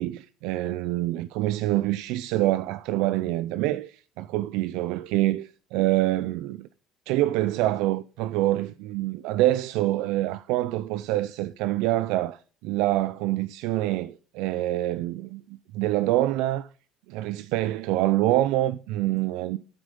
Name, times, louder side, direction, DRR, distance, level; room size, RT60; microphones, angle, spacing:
voice 1, 0.0-6.7 7.1-16.7 17.1-19.6, right 16 dB, 85° right, 0.4 m, -26 dB
10.5 x 9.0 x 5.3 m
cardioid pair, 120°, 0 cm